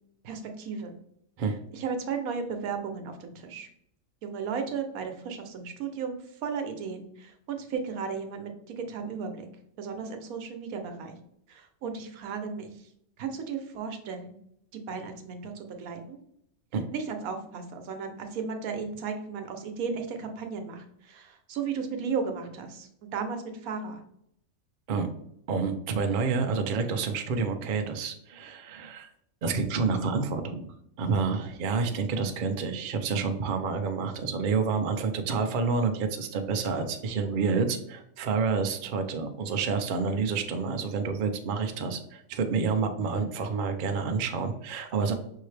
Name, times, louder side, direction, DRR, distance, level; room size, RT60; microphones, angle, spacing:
voice 1, 0.2-1.0 1.7-3.7 4.2-8.5 8.8-9.4 9.8-11.2 11.5-12.7 13.2-14.4 14.7-16.2 16.9-24.0, right 5 dB, 85° right, 5 dB, 1.1 m, -35 dB
voice 2, 25.5-29.1 29.4-30.7 31.0-45.1, right 5 dB, 60° right, 6 dB, 0.5 m, -28 dB
5.4 x 2.8 x 3.2 m, 0.73 s
omnidirectional pair, 1.5 m